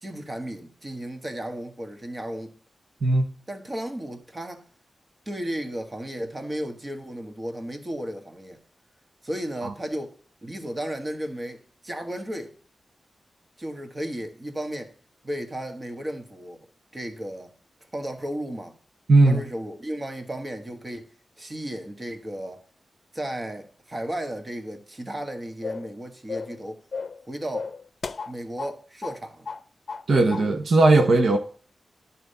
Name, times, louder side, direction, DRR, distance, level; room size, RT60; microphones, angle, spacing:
voice 1, 0.0-2.6 3.5-4.6 5.2-8.6 9.2-12.5 13.6-14.9 15.2-16.6 16.9-17.5 17.9-18.7 19.2-21.1 21.4-22.6 23.1-26.8 27.3-27.7 28.3-29.5, right 1 dB, 30° right, 1.5 m, -34 dB
voice 2, 19.1-19.4 30.1-31.4, right 2 dB, 70° right, 1.0 m, -18 dB
sound 1, 25.6-25.9 26.3-26.6 26.9-27.2 27.5-28.8 29.0-29.2 29.5-30.1 30.3-30.5, left 4 dB, 55° left, 0.7 m, -34 dB
10.5 x 4.3 x 6.7 m
cardioid pair, 75°, 0 cm